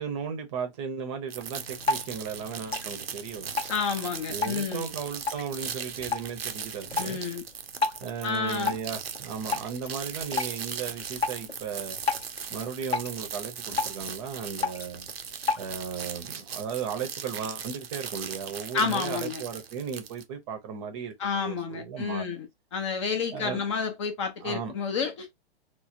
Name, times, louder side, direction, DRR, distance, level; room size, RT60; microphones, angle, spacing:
voice 1, 0.0-3.7 4.3-7.2 8.0-12.0 12.5-15.1 15.6-22.2 23.3-23.6 24.4-24.7, right 6 dB, 30° right, 0.6 m, -36 dB
sound 1, 1.3-20.2, right 7 dB, 70° right, 0.6 m, -39 dB
Drip, 1.5-16.0, left 4 dB, 75° left, 0.7 m, -35 dB
voice 2, 3.7-4.8 7.0-7.4 8.2-8.8 18.7-19.4 21.2-22.5 22.7-25.4, left 6 dB, 30° left, 0.5 m, -30 dB
3.2 x 2.0 x 2.5 m
figure-of-eight pair, 115°, 32 cm